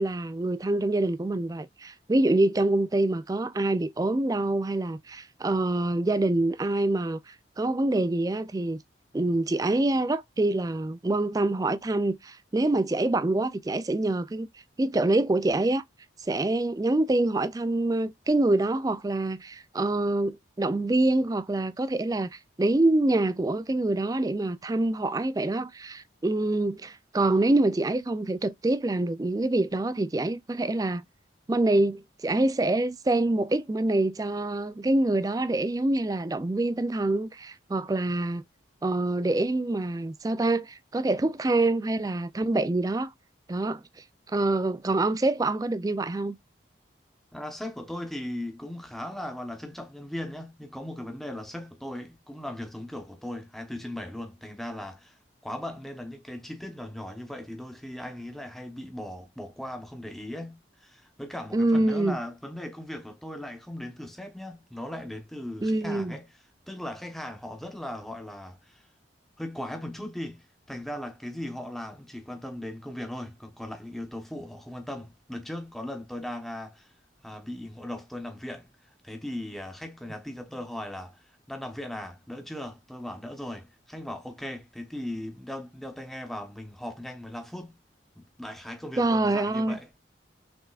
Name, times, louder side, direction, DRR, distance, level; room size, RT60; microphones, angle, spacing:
voice 1, 0.0-8.8 9.1-14.5 14.8-15.8 16.2-31.0 31.5-38.4 38.8-43.1 43.5-43.8 44.3-46.4 61.5-62.2 65.6-66.1 89.0-89.8, right 2 dB, 20° right, 0.3 m, -26 dB
voice 2, 47.3-55.2 55.4-66.3 66.7-68.9 69.4-76.9 77.2-87.8 88.2-89.9, left 1 dB, ahead, 0.9 m, -38 dB
6.3 x 3.5 x 2.4 m
head